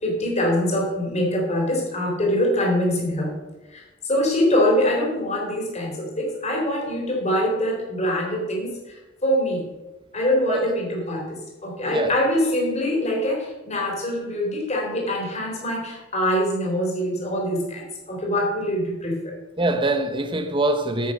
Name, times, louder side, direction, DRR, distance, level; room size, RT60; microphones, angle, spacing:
voice 1, 0.0-3.3 3.7-9.6 10.1-19.3, equal, 35° left, 3.6 m, -24 dB
voice 2, 11.9-12.2 19.6-21.1, right 2 dB, 25° right, 0.8 m, -23 dB
10.0 x 8.3 x 6.4 m
head